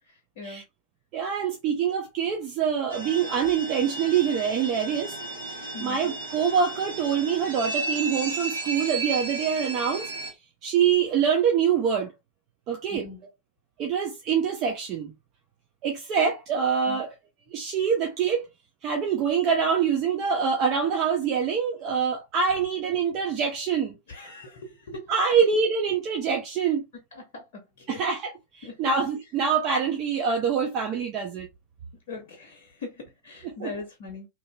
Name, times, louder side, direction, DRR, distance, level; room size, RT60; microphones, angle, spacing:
voice 1, 1.1-5.1 5.6-10.1 10.6-12.1 12.7-13.1 13.8-15.1 15.8-17.1 17.5-18.4 18.8-23.9 25.1-26.8 27.9-31.5 33.4-33.7, right 7 dB, 40° right, 0.6 m, -25 dB
sound 1, 2.9-10.3, right 3 dB, 65° right, 1.0 m, -34 dB
voice 2, 12.9-13.2 16.9-17.0 24.1-24.6 24.9-25.0 27.3-27.6 27.9-28.0 28.6-28.9 32.1-32.9 33.2-34.3, left 3 dB, 55° left, 0.8 m, -39 dB
2.8 x 2.7 x 2.2 m
figure-of-eight pair, 90°, 0 cm